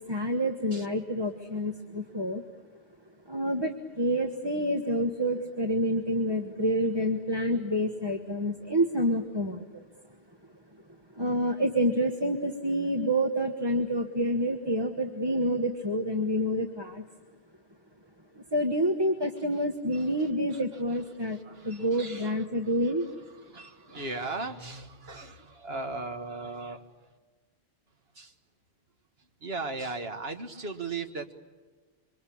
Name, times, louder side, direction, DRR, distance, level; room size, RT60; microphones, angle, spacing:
voice 1, 0.1-2.4 3.3-9.8 11.2-17.0 18.3-23.1, equal, 25° right, 4 dB, 1.4 m, -28 dB
voice 2, 19.9-27.1 28.1-28.3 29.4-31.4, right 3 dB, 70° right, 6 dB, 1.9 m, -38 dB
27.0 x 24.5 x 8.7 m, 1.3 s
omnidirectional pair, 1.1 m